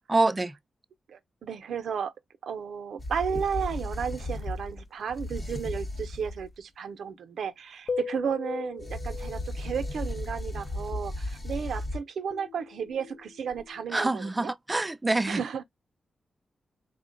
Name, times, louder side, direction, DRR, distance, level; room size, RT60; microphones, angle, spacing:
voice 1, 0.1-0.5 13.9-15.4, right 2 dB, 15° right, 0.3 m, -26 dB
voice 2, 1.1-2.1 2.4-14.5 15.3-15.6, right 7 dB, 85° right, 0.5 m, -33 dB
sound 1, 3.0-6.5 8.8-12.0, left 1 dB, 30° left, 0.7 m, -35 dB
sound 2, 7.9-10.1 12.3-13.8, left 5 dB, 70° left, 0.4 m, -38 dB
3.7 x 2.1 x 3.6 m
wide cardioid pair, 115°, 0 cm